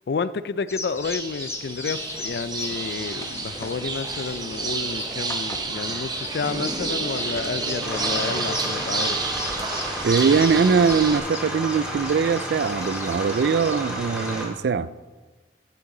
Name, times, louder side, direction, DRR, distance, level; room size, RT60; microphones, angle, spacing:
voice 1, 0.1-9.2, left 4 dB, 60° left, 0.4 m, -30 dB
sound 1, 0.7-14.4, left 3 dB, 15° left, 0.9 m, -38 dB
sound 2, 1.0-11.2, right 3 dB, 20° right, 0.7 m, -30 dB
sound 3, 7.8-14.4, equal, 5° right, 2.3 m, -32 dB
voice 2, 10.0-14.9, right 5 dB, 65° right, 0.3 m, -21 dB
14.5 x 6.9 x 3.8 m
head